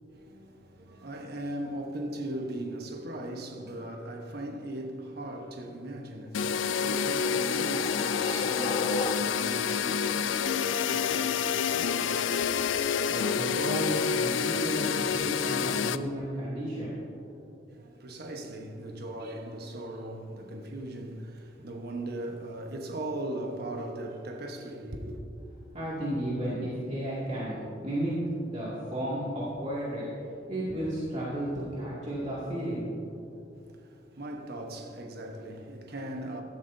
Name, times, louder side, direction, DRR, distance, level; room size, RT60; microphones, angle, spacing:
voice 1, 0.1-12.7 17.7-25.2 33.5-36.4, right 1 dB, 55° right, 1.1 m, -39 dB
sound 1, 6.3-16.0, left 7 dB, 90° left, 0.4 m, -28 dB
sound 2, 6.4-9.7, left 3 dB, 25° left, 0.4 m, -36 dB
voice 2, 13.1-16.9 25.7-28.1 28.4-30.1 30.5-32.9, right 1 dB, 40° right, 2.3 m, -33 dB
16.0 x 13.0 x 2.7 m
head